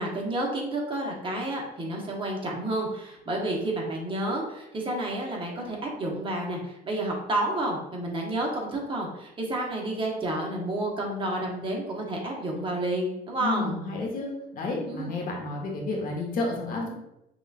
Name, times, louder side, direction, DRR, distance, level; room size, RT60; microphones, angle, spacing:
voice 1, 0.0-13.7 14.9-15.1, right 1 dB, 30° right, -1 dB, 1.1 m, -30 dB
voice 2, 13.4-16.9, left 2 dB, 55° left, 0 dB, 1.0 m, -31 dB
5.9 x 2.4 x 2.5 m, 0.86 s
cardioid pair, 110°, 17 cm